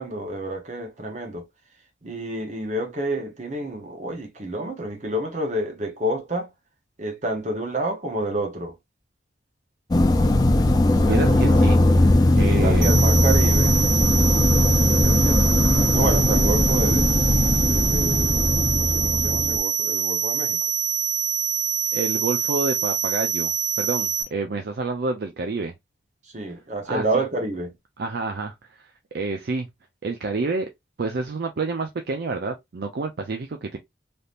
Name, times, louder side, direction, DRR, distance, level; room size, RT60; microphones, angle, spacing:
voice 1, 0.0-1.4 2.0-6.5 7.0-8.8 11.0-11.7 12.4-13.8 14.6-17.1 17.7-20.6 26.3-27.7, right 1 dB, 35° right, 0.8 m, -29 dB
sound 1, 9.9-19.6, left 1 dB, 20° left, 0.3 m, -19 dB
voice 2, 11.1-11.8 12.0-13.0 21.9-25.7 26.9-27.2 28.0-29.7 30.0-30.7 31.0-33.8, right 3 dB, 55° right, 0.4 m, -28 dB
sound 2, 12.8-24.2, right 7 dB, 70° right, 1.4 m, -25 dB
3.4 x 2.7 x 2.4 m
head